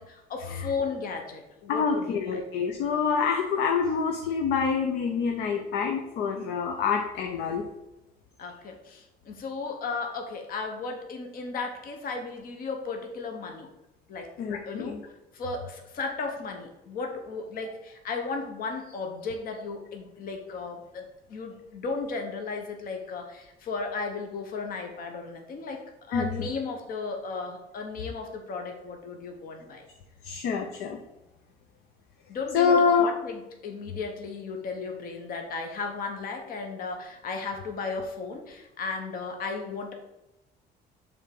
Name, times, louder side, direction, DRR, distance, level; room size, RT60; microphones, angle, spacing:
voice 1, 0.0-2.4 8.4-13.7 14.1-14.3 14.6-15.0 15.3-25.8 26.1-29.8 32.3-39.9, left 4 dB, 60° left, 3 dB, 1.1 m, -35 dB
voice 2, 1.7-7.6 14.4-15.0 26.1-26.5 30.2-31.0 32.5-33.1, left 6 dB, 80° left, 4 dB, 0.8 m, -26 dB
7.0 x 3.6 x 6.0 m, 0.93 s
cardioid pair, 110°, 17 cm